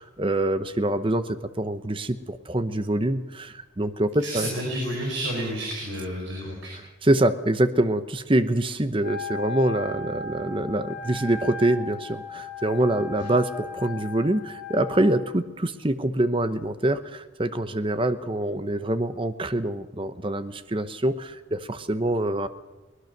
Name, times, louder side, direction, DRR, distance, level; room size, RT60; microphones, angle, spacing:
voice 1, 0.0-4.5 6.7-22.5, right 1 dB, 25° right, 11 dB, 0.9 m, -25 dB
voice 2, 4.2-6.7 13.2-13.3, right 1 dB, 70° right, -1 dB, 5.2 m, -30 dB
Wind instrument woodwind instrument, 9.0-15.2, left 3 dB, 50° left, 4.5 m, -37 dB
23.0 x 19.5 x 6.7 m, 1.1 s
head